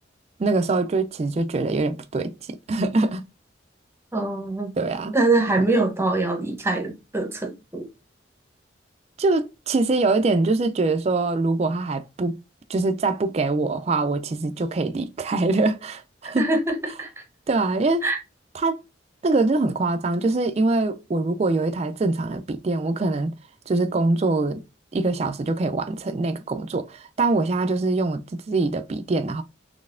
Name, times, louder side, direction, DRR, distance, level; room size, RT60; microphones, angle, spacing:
voice 1, 0.4-2.3 2.7-3.2 4.8-5.2 9.2-12.4 12.7-16.5 17.5-18.0 18.5-18.8 19.2-23.3 23.7-24.6 24.9-29.4, right 3 dB, 35° right, 0.4 m, -23 dB
voice 2, 4.1-4.7 5.1-7.9 16.2-17.2 18.0-18.2, right 2 dB, 15° right, 0.8 m, -24 dB
4.0 x 3.1 x 2.5 m
head